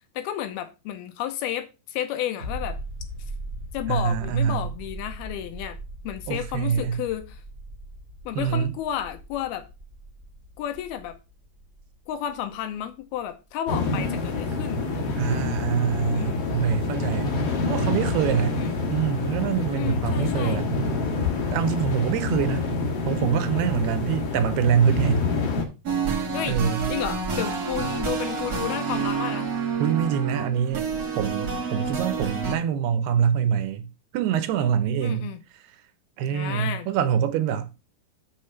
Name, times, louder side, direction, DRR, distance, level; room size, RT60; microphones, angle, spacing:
voice 1, 0.2-2.8 3.7-5.8 6.0-7.4 8.3-9.7 10.6-11.2 12.1-15.2 16.1-16.4 18.5-18.7 19.8-20.6 26.3-26.6 26.9-29.5 35.0-35.4 36.3-36.9, left 11 dB, 80° left, 2.5 m, -32 dB
sound 1, 2.4-13.7 14.0-14.1, right 1 dB, 15° right, 2.1 m, -40 dB
voice 2, 3.9-4.7 6.3-7.0 8.4-8.7 15.2-17.3 17.7-18.6 18.9-20.7 21.5-22.6 23.1-25.3 26.5-26.9 29.8-30.9 31.2-33.9 34.1-35.3 36.2-37.7, right 8 dB, 80° right, 2.7 m, -25 dB
sound 2, 13.7-25.7, left 3 dB, 50° left, 2.1 m, -27 dB
sound 3, 25.8-32.5, right 5 dB, 60° right, 0.9 m, -28 dB
6.6 x 6.3 x 5.8 m
omnidirectional pair, 4.8 m